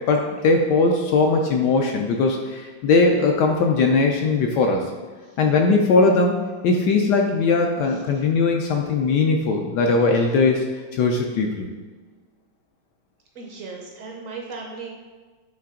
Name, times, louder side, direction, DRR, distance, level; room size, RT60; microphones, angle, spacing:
voice 1, 0.0-4.8 5.4-10.6 10.9-11.7, left 3 dB, 75° left, 2 dB, 1.0 m, -19 dB
voice 2, 13.3-14.9, right 4 dB, 65° right, 0 dB, 0.8 m, -36 dB
8.6 x 3.4 x 3.7 m, 1.4 s
omnidirectional pair, 2.2 m